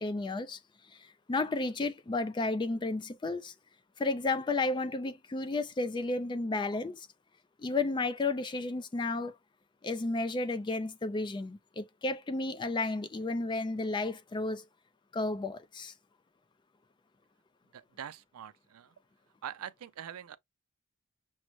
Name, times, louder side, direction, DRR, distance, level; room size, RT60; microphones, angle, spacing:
voice 1, 0.0-3.5 4.0-7.1 7.6-9.3 9.8-14.7 15.1-15.9, left 3 dB, 20° left, 0.3 m, -32 dB
voice 2, 17.7-18.9 19.4-20.4, right 9 dB, 80° right, 0.4 m, -44 dB
6.1 x 2.1 x 3.0 m
head